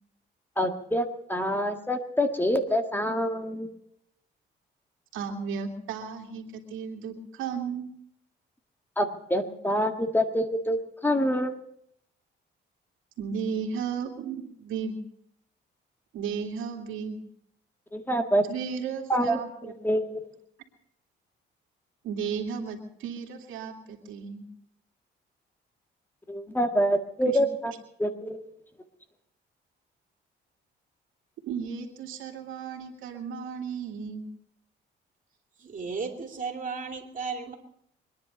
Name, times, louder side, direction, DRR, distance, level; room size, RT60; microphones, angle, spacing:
voice 1, 0.6-3.7 9.0-11.5 17.9-18.4 19.1-20.2 26.3-27.7 28.0-28.4, equal, 10° left, 5 dB, 1.7 m, -26 dB
voice 2, 5.1-7.9 13.2-15.0 16.1-17.2 18.5-19.7 22.0-24.4 27.2-27.4 31.5-34.3, right 6 dB, 90° right, 2 dB, 2.5 m, -34 dB
voice 3, 35.6-37.5, right 5 dB, 40° right, 3 dB, 2.9 m, -34 dB
24.5 x 10.5 x 5.3 m, 0.72 s
cardioid pair, 90°, 20 cm